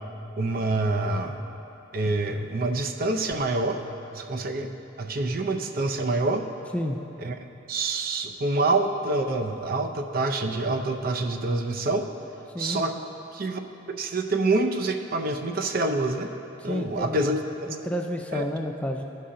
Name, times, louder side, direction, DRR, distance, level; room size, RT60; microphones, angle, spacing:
voice 1, 0.4-1.4 1.9-3.8 4.1-4.7 5.0-6.4 7.2-7.3 7.7-12.1 12.6-12.9 13.3-13.6 13.9-16.3 16.6-17.8 18.3-18.4, right 2 dB, 50° right, 5 dB, 0.5 m, -26 dB
voice 2, 16.6-17.3 17.7-19.0, equal, 5° left, 2 dB, 0.3 m, -30 dB
13.5 x 5.6 x 3.7 m, 2.9 s
head